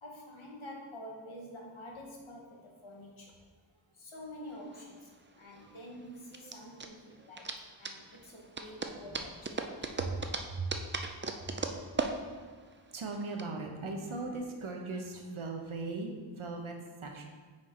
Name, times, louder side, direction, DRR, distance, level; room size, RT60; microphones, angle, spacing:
voice 1, 0.0-3.3 3.9-5.1 5.4-9.6, left 1 dB, 75° left, -1 dB, 1.4 m, -48 dB
sound 1, 4.5-13.4, right 3 dB, 25° right, 0.5 m, -38 dB
voice 2, 9.7-12.0 12.9-16.8 17.0-17.3, right 3 dB, 85° right, 2 dB, 1.0 m, -39 dB
6.1 x 4.7 x 4.3 m, 1.5 s
wide cardioid pair, 70°, 48 cm